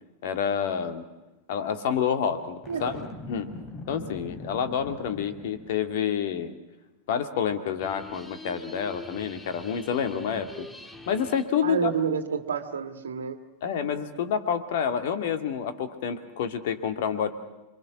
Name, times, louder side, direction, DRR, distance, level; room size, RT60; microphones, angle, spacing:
voice 1, 0.2-1.0 1.5-3.5 3.9-6.5 7.1-10.7 11.1-11.9 13.6-17.3, left 8 dB, 55° left, 8 dB, 2.2 m, -28 dB
Boom, 2.6-5.8, left 2 dB, 30° left, 2.7 m, -41 dB
voice 2, 2.7-3.0 11.6-13.4, right 6 dB, 65° right, 9 dB, 1.7 m, -29 dB
sound 1, 7.8-11.6, left 2 dB, 10° left, 1.7 m, -44 dB
27.5 x 25.0 x 6.2 m, 1.0 s
figure-of-eight pair, 90°, 0 cm